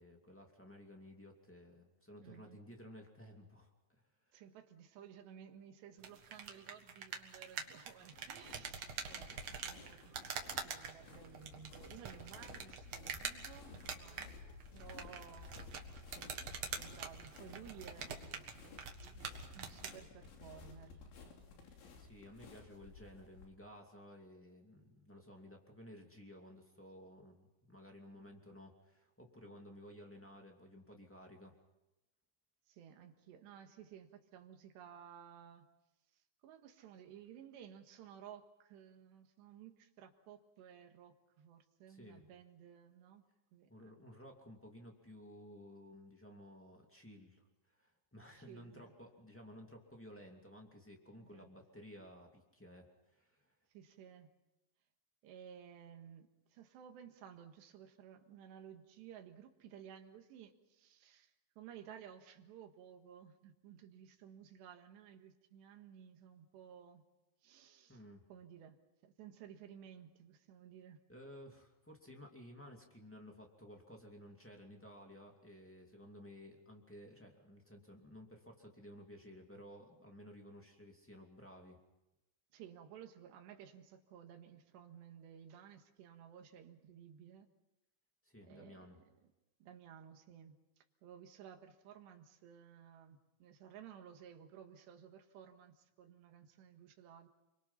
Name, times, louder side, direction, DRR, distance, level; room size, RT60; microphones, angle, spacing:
voice 1, 0.0-3.7 4.3-4.4 8.6-8.7 9.3-9.5 22.0-31.5 41.9-42.2 43.7-53.5 67.9-68.2 71.1-81.8 88.2-89.0, equal, 10° left, 1 dB, 0.6 m, -55 dB
voice 2, 2.2-2.6 4.3-14.3 14.7-18.4 19.5-20.9 32.7-35.7 36.4-43.2 43.5-43.9 48.4-48.9 51.2-51.5 53.7-54.3 55.2-67.0 67.4-68.0 68.3-68.8 69.0-71.0 82.5-87.5 88.4-89.0 89.6-97.3, right 9 dB, 70° right, 5 dB, 3.6 m, -56 dB
sound 1, 6.0-20.0, right 6 dB, 55° right, 1.8 m, -46 dB
sound 2, 8.1-23.5, left 4 dB, 80° left, 5.4 m, -55 dB
30.0 x 23.0 x 5.7 m, 0.96 s
omnidirectional pair, 5.3 m